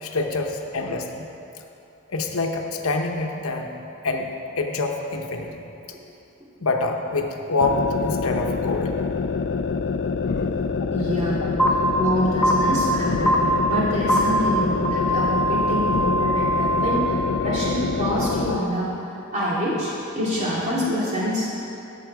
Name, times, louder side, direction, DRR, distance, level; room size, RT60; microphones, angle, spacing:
voice 1, 0.0-1.3 2.1-3.7 4.0-5.6 6.6-8.9, left 3 dB, 80° left, 3 dB, 0.9 m, -26 dB
sound 1, 7.6-18.7, left 5 dB, 50° left, 0.4 m, -26 dB
voice 2, 10.9-11.4 11.7-18.9 19.3-21.5, equal, 30° right, -7 dB, 2.7 m, -26 dB
sound 2, 11.6-11.7 12.4-12.5 13.3-13.4 14.1-14.2 14.8-17.0, right 1 dB, 5° left, 1.1 m, -22 dB
17.0 x 5.8 x 4.8 m, 2.9 s
head